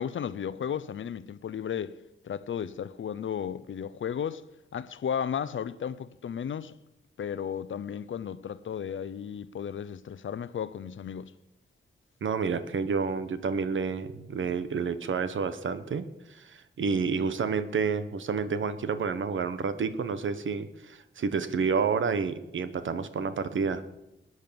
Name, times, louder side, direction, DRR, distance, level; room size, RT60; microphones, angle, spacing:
voice 1, 0.0-2.0 2.2-4.4 4.7-6.8 7.2-11.3, left 8 dB, 70° left, 0.7 m, -34 dB
voice 2, 12.2-23.8, right 5 dB, 70° right, 1.3 m, -29 dB
21.0 x 9.6 x 7.1 m
wide cardioid pair, 135°, 21 cm